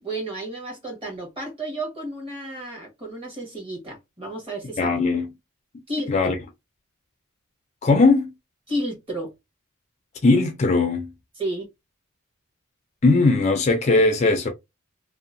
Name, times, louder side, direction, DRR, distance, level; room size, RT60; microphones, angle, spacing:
voice 1, 0.0-4.9 5.9-6.3 8.7-9.3 11.4-11.7, right 1 dB, 25° right, 1.3 m, -32 dB
voice 2, 4.8-5.3 6.1-6.4 7.8-8.3 10.2-11.1 13.0-14.5, left 3 dB, 30° left, 0.4 m, -19 dB
2.8 x 2.1 x 2.5 m
head